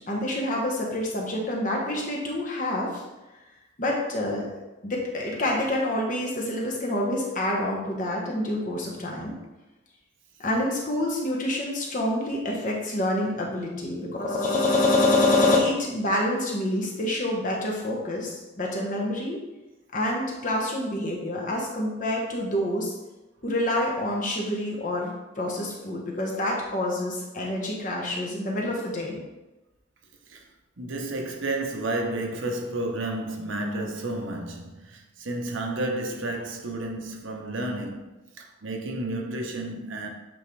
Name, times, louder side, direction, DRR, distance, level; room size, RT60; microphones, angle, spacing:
voice 1, 0.1-3.0 3.8-4.5 4.8-9.4 10.4-19.4 19.9-22.9 23.4-29.2, left 1 dB, 40° left, 1.2 m, -27 dB
voice 2, 30.8-40.1, right 2 dB, 75° right, 0.9 m, -31 dB
8.4 x 3.6 x 3.3 m
head